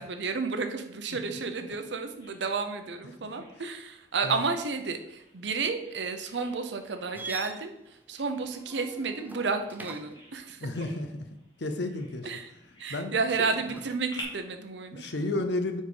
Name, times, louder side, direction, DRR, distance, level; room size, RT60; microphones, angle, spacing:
voice 1, 0.0-10.7 12.2-12.5 12.8-15.1, right 4 dB, 75° right, 7 dB, 0.7 m, -32 dB
Bird vocalization bird call bird song, 0.6-14.2, equal, 25° left, 1.3 m, -53 dB
sound 1, 7.1-10.3 13.3-14.0, right 2 dB, 10° right, 0.4 m, -44 dB
voice 2, 10.6-11.2 11.6-12.3 12.9-13.1 14.9-15.8, left 2 dB, 75° left, 7 dB, 0.7 m, -31 dB
5.0 x 4.2 x 5.2 m, 0.83 s
head